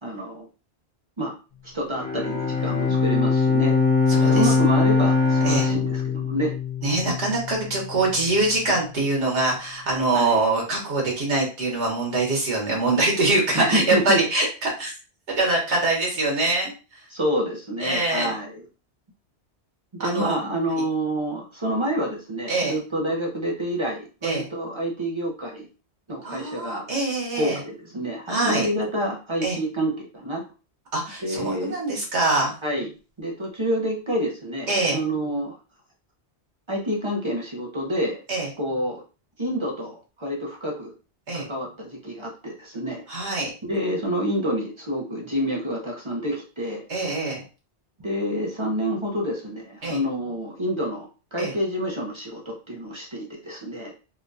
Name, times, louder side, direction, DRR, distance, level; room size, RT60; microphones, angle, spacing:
voice 1, 0.0-0.5 1.2-1.3 1.6-3.8 4.1-6.6 10.1-10.4 13.5-14.2 17.1-18.6 19.9-25.7 26.1-26.9 27.3-30.4 31.2-31.8 32.6-32.9 33.2-35.6 36.7-38.2 38.6-39.0 39.4-40.9 41.3-43.0 43.6-46.8 48.0-53.9, equal, 30° right, -1 dB, 0.7 m, -28 dB
Bowed string instrument, 1.9-7.4, left 4 dB, 40° left, 1.1 m, -21 dB
voice 2, 4.1-4.5 5.4-5.7 6.8-14.9 15.4-17.0 17.8-18.3 20.0-20.4 22.5-22.7 24.2-24.5 26.2-27.6 28.3-28.7 29.4-29.6 30.9-32.5 34.7-35.0 38.3-38.5 41.3-41.5 43.1-43.5 46.9-47.4 49.8-50.0 51.4-51.5, right 2 dB, 85° right, -1 dB, 1.6 m, -24 dB
3.8 x 2.3 x 2.6 m, 0.34 s
omnidirectional pair, 1.1 m